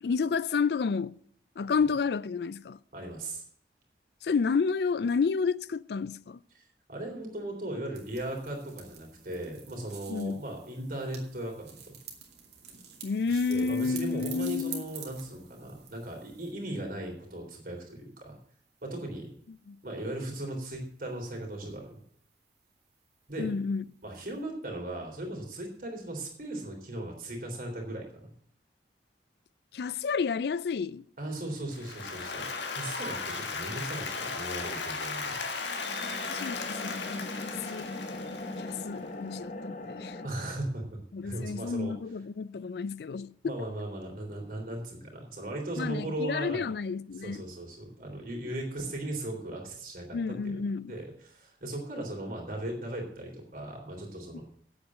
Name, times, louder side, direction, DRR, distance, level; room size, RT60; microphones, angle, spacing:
voice 1, 0.0-1.1 1.6-2.8 4.2-6.4 10.1-10.4 13.0-14.8 19.7-19.8 23.4-23.8 29.7-31.0 36.3-37.9 38.6-40.2 41.1-43.3 45.8-47.4 50.1-50.9 54.3-54.4, left 5 dB, 65° left, 0.4 m, -30 dB
voice 2, 2.9-3.4 6.6-6.7 6.9-11.9 13.3-18.4 18.8-19.3 19.8-22.0 23.3-23.5 24.0-28.3 31.2-35.4 40.2-42.0 43.4-46.7 47.2-50.6 50.9-54.4, right 1 dB, 50° right, 3.6 m, -37 dB
sound 1, 7.9-16.5, right 8 dB, 70° right, 2.6 m, -47 dB
Applause, 31.7-38.9, left 4 dB, 90° left, 1.7 m, -36 dB
sound 2, 35.6-40.3, left 2 dB, 45° left, 1.0 m, -40 dB
8.7 x 8.0 x 7.5 m
head